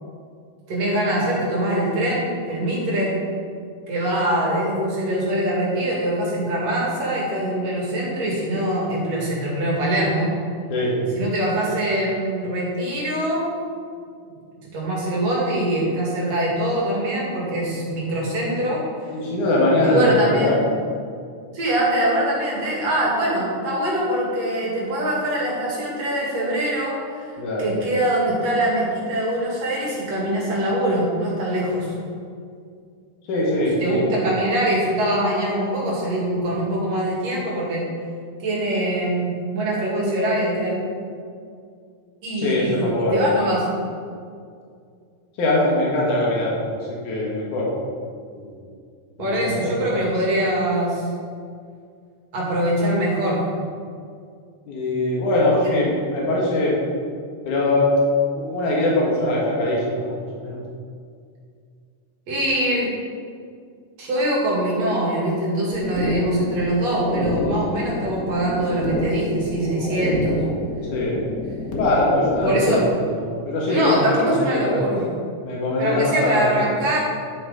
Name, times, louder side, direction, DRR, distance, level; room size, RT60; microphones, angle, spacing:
voice 1, 0.7-3.2 3.9-10.3 11.2-13.5 14.6-18.8 19.8-20.7 21.5-31.9 33.8-37.8 38.4-40.8 42.2-43.6 49.2-51.1 52.3-53.4 55.5-55.7 62.3-62.9 64.0-70.4 72.4-72.9 73.6-75.0 75.8-77.0, right 1 dB, 60° right, -5 dB, 3.5 m, -23 dB
voice 2, 10.7-11.1 19.1-20.6 27.4-27.8 33.3-34.2 42.4-43.3 45.4-47.7 48.3-48.5 49.2-49.9 54.7-56.8 57.4-57.9 58.3-60.6 70.9-71.2 71.8-72.8 73.0-74.8 75.4-76.6, left 1 dB, 85° left, -4 dB, 3.1 m, -22 dB
sound 1, 65.7-72.7, left 2 dB, 60° left, 0.9 m, -29 dB
11.5 x 6.3 x 5.1 m, 2.2 s
omnidirectional pair, 3.4 m